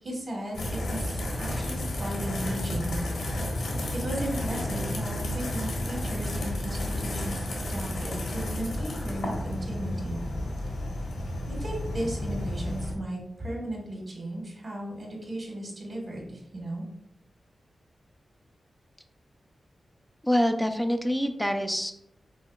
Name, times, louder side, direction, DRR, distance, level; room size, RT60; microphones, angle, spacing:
voice 1, 0.0-3.0 3.9-10.2 11.5-16.8, right 1 dB, 40° right, -3 dB, 1.4 m, -36 dB
sound 1, 0.5-12.9, left 1 dB, 90° left, 1.2 m, -32 dB
voice 2, 20.2-21.9, equal, 5° left, 7 dB, 0.4 m, -25 dB
5.5 x 4.1 x 2.3 m, 0.83 s
wide cardioid pair, 150°, 0 cm